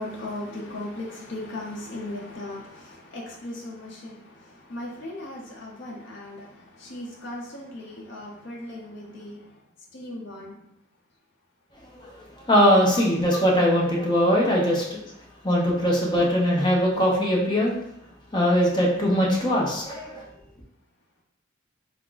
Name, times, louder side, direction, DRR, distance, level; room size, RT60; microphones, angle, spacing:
voice 1, 0.0-9.4 9.9-10.6 12.9-13.0, left 1 dB, 55° left, -2 dB, 0.6 m, -37 dB
voice 2, 12.5-14.8 15.4-17.7 18.3-20.2, equal, 20° left, -3 dB, 0.7 m, -21 dB
3.5 x 2.4 x 3.8 m, 0.78 s
head